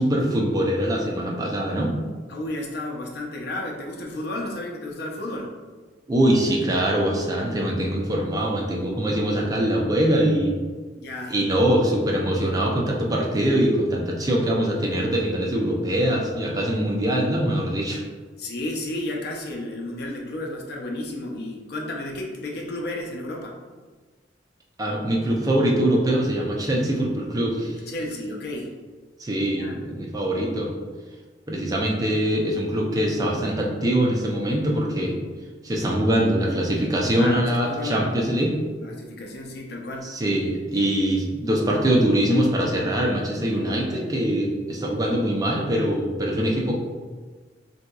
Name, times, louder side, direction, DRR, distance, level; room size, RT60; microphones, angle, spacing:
voice 1, 0.0-1.9 6.1-10.5 11.3-18.0 24.8-27.8 29.2-30.7 31.5-35.2 35.6-38.5 40.0-46.7, right 1 dB, 20° right, -1 dB, 0.4 m, -23 dB
voice 2, 2.3-5.5 11.0-11.4 18.4-23.6 27.9-28.7 29.5-29.8 37.2-38.1 38.8-40.1, left 1 dB, 65° left, 0 dB, 0.5 m, -32 dB
3.7 x 2.7 x 2.3 m, 1.4 s
head